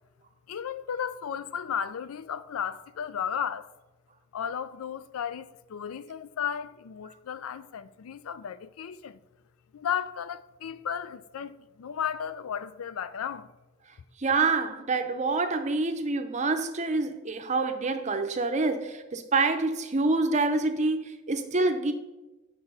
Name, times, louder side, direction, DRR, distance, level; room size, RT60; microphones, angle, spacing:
voice 1, 0.5-3.7 4.3-9.2 9.7-13.5, left 8 dB, 80° left, 0.4 m, -34 dB
voice 2, 14.2-21.9, right 3 dB, 35° right, 0.6 m, -26 dB
6.8 x 4.7 x 5.4 m
head